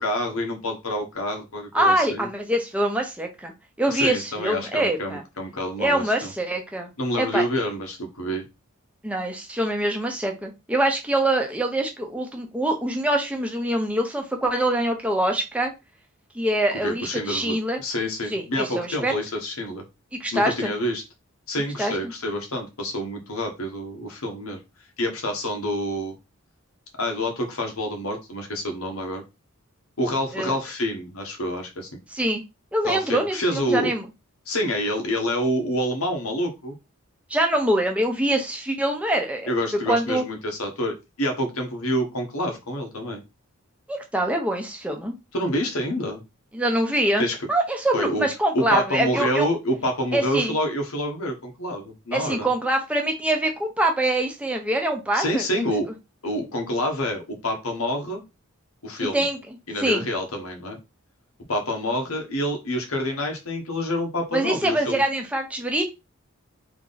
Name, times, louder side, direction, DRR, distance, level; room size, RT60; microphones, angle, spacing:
voice 1, 0.0-2.3 3.9-6.3 7.0-8.5 16.8-19.8 20.3-21.0 21.5-24.6 25.0-26.1 27.0-29.2 30.0-32.0 32.8-33.9 34.5-36.7 39.5-43.2 45.3-46.2 47.2-47.3 47.9-48.3 48.5-52.5 55.1-55.9 56.2-58.2 58.8-59.2 59.7-60.8 61.5-65.0, left 1 dB, 75° left, 3 dB, 1.3 m, -27 dB
voice 2, 1.7-3.5 3.8-5.2 5.8-6.9 7.2-7.4 9.0-15.7 16.3-17.8 18.3-19.1 20.1-20.7 21.8-22.1 30.3-30.5 32.1-32.4 32.7-34.0 37.3-39.5 39.9-40.2 43.9-45.1 46.5-47.2 47.5-49.5 50.1-50.5 52.1-55.6 59.1-59.4 59.8-60.0 64.3-65.9, right 1 dB, 5° right, 2 dB, 0.8 m, -24 dB
3.6 x 3.1 x 3.9 m, 0.24 s
head